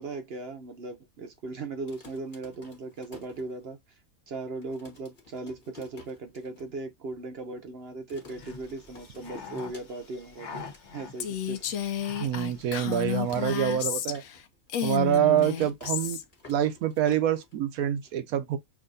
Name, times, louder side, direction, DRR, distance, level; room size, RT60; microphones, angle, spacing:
voice 1, 0.0-3.8 4.3-10.6 10.9-11.7 15.2-15.5, right 3 dB, 55° right, 0.8 m, -38 dB
sound 1, 1.9-4.0 4.3-4.4 4.6-6.7 7.0-7.1 7.3-7.7 8.1-10.2 10.5-10.9 11.4-11.5 12.2-14.7 14.9-17.9, left 4 dB, 35° left, 1.4 m, -52 dB
sound 2, 8.3-13.8, left 5 dB, 55° left, 1.3 m, -46 dB
Female speech woman speaking, 11.2-14.4 14.7-16.2, left 10 dB, 70° left, 1.0 m, -31 dB
voice 2, 12.2-14.2 14.8-16.2 16.5-18.6, right 10 dB, 80° right, 1.1 m, -26 dB
6.1 x 2.6 x 2.6 m
omnidirectional pair, 1.5 m